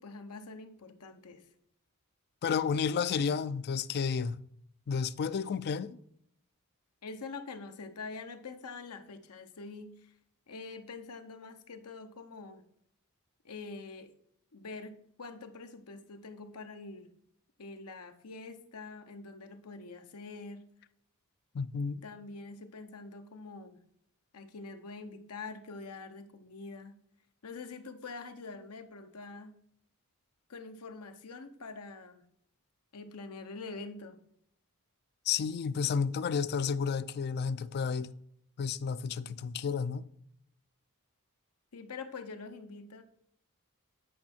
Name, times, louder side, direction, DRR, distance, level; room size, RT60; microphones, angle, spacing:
voice 1, 0.0-1.5 7.0-10.1 10.5-12.6 13.4-14.1 14.5-17.1 17.6-20.6 22.0-23.8 24.3-27.0 27.4-29.6 30.5-32.2 32.9-34.2 41.7-43.0, left 3 dB, 85° left, 0.8 m, -45 dB
voice 2, 2.4-4.4 4.9-6.0 21.5-22.0 35.3-38.1 38.6-40.1, left 6 dB, 45° left, 0.3 m, -31 dB
8.5 x 5.3 x 4.3 m
head